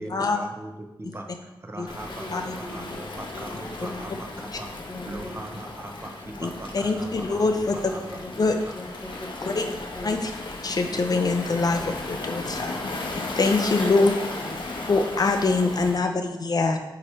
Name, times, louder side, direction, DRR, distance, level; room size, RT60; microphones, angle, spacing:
voice 1, 0.0-4.7 5.0-8.8, right 1 dB, 30° right, 3 dB, 0.7 m, -40 dB
Waves surf, 1.9-16.0, left 2 dB, 70° left, 0.9 m, -35 dB
voice 2, 2.1-3.0 3.4-4.2 4.9-5.4 7.7-10.2 13.7-14.1 14.4-14.9, left 1 dB, 10° left, 4 dB, 0.8 m, -40 dB
voice 3, 6.4-7.9 8.4-8.5 9.5-9.6 10.0-10.3 10.6-12.7 13.1-14.1 14.9-16.8, left 3 dB, 50° left, 5 dB, 0.5 m, -24 dB
8.7 x 3.1 x 4.4 m, 0.99 s
wide cardioid pair, 110°, 9 cm